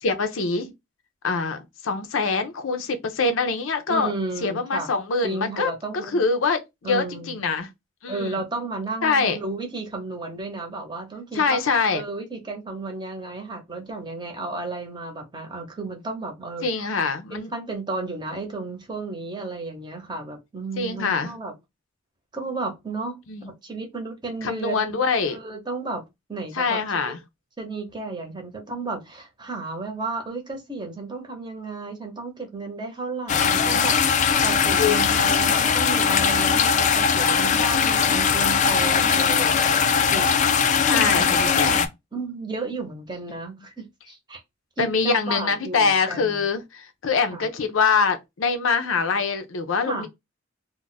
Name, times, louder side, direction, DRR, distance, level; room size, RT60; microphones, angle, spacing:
voice 1, 0.0-0.7 1.2-4.1 4.4-5.7 6.0-7.7 8.0-8.4 9.0-9.4 11.3-12.0 16.6-17.5 20.8-21.3 23.3-23.5 24.4-25.4 26.5-27.2 33.4-33.8 34.8-35.0 40.8-41.9 44.8-50.1, left 4 dB, 85° left, 0.6 m, -24 dB
voice 2, 3.9-4.9 5.2-6.2 6.8-7.4 8.1-11.6 11.9-16.9 17.3-21.5 22.3-26.0 26.3-27.1 27.6-40.3 40.8-41.8 42.1-44.4 44.8-46.4 47.3-47.5 49.9-50.1, right 3 dB, 25° right, 0.8 m, -33 dB
sound 1, 33.3-41.9, left 6 dB, 40° left, 0.3 m, -20 dB
2.4 x 2.1 x 3.9 m
head